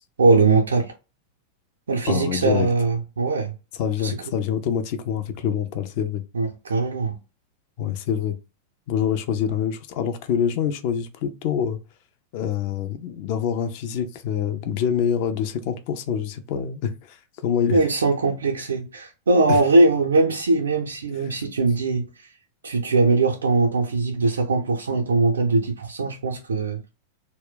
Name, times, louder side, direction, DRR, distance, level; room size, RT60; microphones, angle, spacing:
voice 1, 0.2-0.9 1.9-3.5 4.0-4.2 6.3-7.1 17.7-22.3 22.6-26.8, right 3 dB, 70° right, 0.4 m, -21 dB
voice 2, 2.1-2.7 3.8-6.2 7.8-8.4 8.9-11.8 12.3-17.8 19.5-19.6, left 8 dB, 45° left, 0.4 m, -26 dB
2.2 x 2.1 x 3.7 m
figure-of-eight pair, 90°, 0 cm